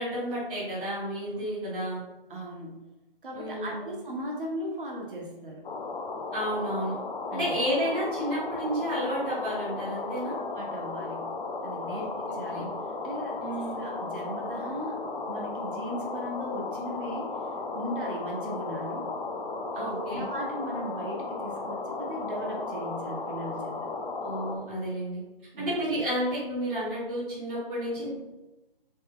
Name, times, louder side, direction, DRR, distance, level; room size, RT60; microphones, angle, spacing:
voice 1, 0.0-2.0 3.3-3.9 6.3-6.9 7.3-10.3 11.9-12.6 13.4-13.8 19.7-20.2 24.2-25.2 25.6-28.1, equal, 5° right, -12 dB, 0.6 m, -31 dB
voice 2, 2.3-2.8 3.2-5.6 7.3-7.6 10.4-11.3 11.6-12.7 13.0-13.4 13.8-17.4 17.7-19.2 19.7-23.8 25.5-25.7, right 1 dB, 60° right, -1 dB, 1.0 m, -37 dB
sound 1, 5.6-24.6, left 3 dB, 65° left, 0.6 m, -35 dB
3.5 x 2.1 x 3.5 m, 1.1 s
figure-of-eight pair, 150°, 29 cm